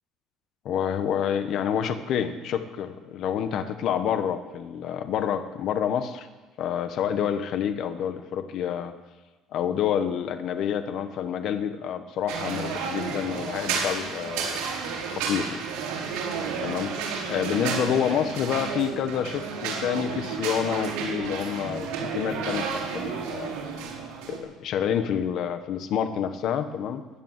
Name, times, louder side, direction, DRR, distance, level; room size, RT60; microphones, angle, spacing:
voice 1, 0.6-6.3 6.6-8.9 9.5-14.6 15.1-15.6 16.6-16.9 17.3-21.9 22.1-23.5 24.3-27.0, left 8 dB, 50° left, 9 dB, 1.3 m, -28 dB
sound 1, 12.3-24.4, right 5 dB, 85° right, 4.6 m, -31 dB
17.0 x 11.0 x 7.5 m, 1.2 s
cardioid pair, 150°, 0 cm